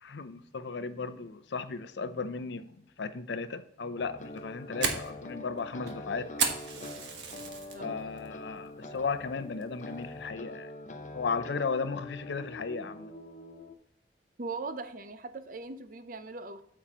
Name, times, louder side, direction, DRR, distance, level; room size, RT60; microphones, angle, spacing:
voice 1, 0.0-6.3 7.8-10.7 11.1-13.1, left 4 dB, 75° left, 12 dB, 0.5 m, -35 dB
sound 1, 4.0-13.7, left 2 dB, 40° left, 0.7 m, -44 dB
Fire, 4.2-7.8 8.2-8.6 9.0-9.1 9.6-10.0, right 6 dB, 75° right, 1.3 m, -33 dB
voice 2, 14.4-16.6, right 3 dB, 45° right, 10 dB, 0.6 m, -40 dB
8.8 x 7.3 x 3.0 m, 0.76 s
head